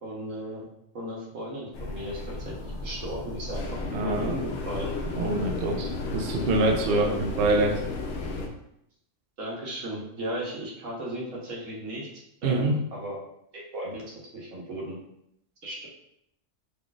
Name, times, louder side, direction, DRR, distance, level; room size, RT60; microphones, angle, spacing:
voice 1, 0.0-0.7 0.9-4.9 6.9-7.3 9.4-12.1 12.4-13.2 13.5-15.0 15.6-15.9, equal, 80° right, -3 dB, 1.4 m, -36 dB
sound 1, 1.7-8.5, left 3 dB, 70° left, 0.9 m, -33 dB
voice 2, 3.9-4.4 5.2-7.7 12.4-12.8, right 2 dB, 60° right, 1 dB, 0.7 m, -25 dB
3.9 x 3.2 x 2.4 m, 0.76 s
omnidirectional pair, 1.3 m